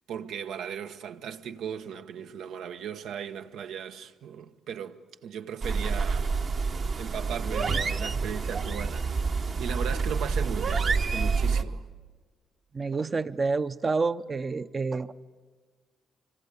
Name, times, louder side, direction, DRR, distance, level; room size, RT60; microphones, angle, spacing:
voice 1, 0.1-6.3 7.0-9.2 9.6-11.9, right 8 dB, 80° right, 1.1 m, -37 dB
sound 1, 5.6-11.6, right 4 dB, 50° right, 1.2 m, -28 dB
voice 2, 12.7-15.1, right 4 dB, 30° right, 0.7 m, -28 dB
25.0 x 25.0 x 8.3 m
cardioid pair, 90°, 0 cm